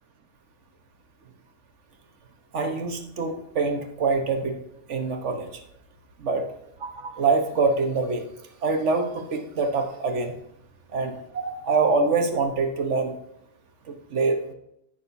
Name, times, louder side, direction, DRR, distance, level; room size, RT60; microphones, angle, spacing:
voice 1, 2.5-4.6 4.9-5.5 6.2-6.4 6.8-8.2 8.6-10.4 10.9-13.1 13.9-14.5, right 4 dB, 75° right, 5 dB, 1.5 m, -25 dB
15.5 x 6.4 x 2.7 m, 0.78 s
omnidirectional pair, 1.2 m